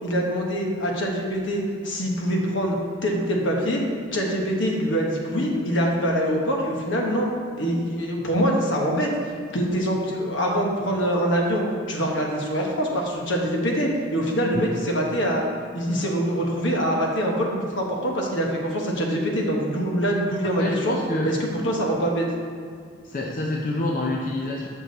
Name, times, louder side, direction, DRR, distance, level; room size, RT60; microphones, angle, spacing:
voice 1, 0.0-2.8 3.0-3.8 4.1-7.3 7.6-11.6 11.9-15.4 15.7-21.0 21.2-21.4 21.6-22.3, equal, 75° left, 0 dB, 1.2 m, -24 dB
voice 2, 20.4-21.3 23.0-24.7, left 2 dB, 45° left, -1 dB, 0.5 m, -27 dB
6.6 x 6.1 x 4.1 m, 2.2 s
head